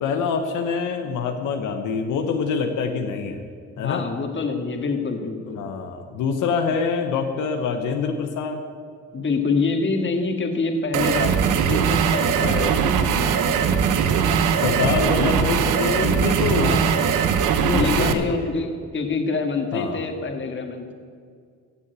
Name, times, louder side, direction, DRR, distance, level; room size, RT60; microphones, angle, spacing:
voice 1, 0.0-3.4 3.8-4.1 5.6-8.6 12.4-13.0 14.2-16.9 17.5-18.5 19.7-20.1, left 5 dB, 85° left, 5 dB, 1.1 m, -25 dB
voice 2, 3.8-5.6 9.1-13.3 16.5-16.9 17.7-20.9, left 4 dB, 40° left, 4 dB, 2.0 m, -26 dB
sound 1, 10.9-18.1, right 7 dB, 85° right, 1.1 m, -20 dB
15.0 x 7.1 x 8.3 m, 2.1 s
cardioid pair, 90°, 30 cm